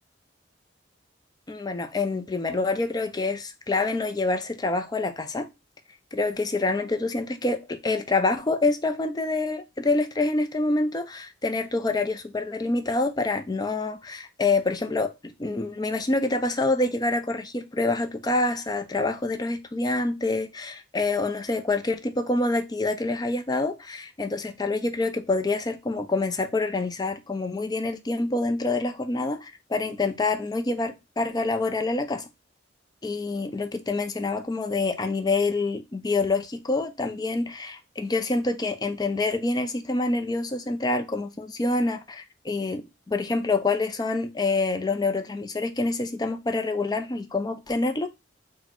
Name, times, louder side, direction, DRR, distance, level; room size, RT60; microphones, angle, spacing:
voice 1, 1.5-5.5 6.1-32.3 33.0-48.1, left 3 dB, 20° left, 0.4 m, -26 dB
4.1 x 2.1 x 4.3 m
head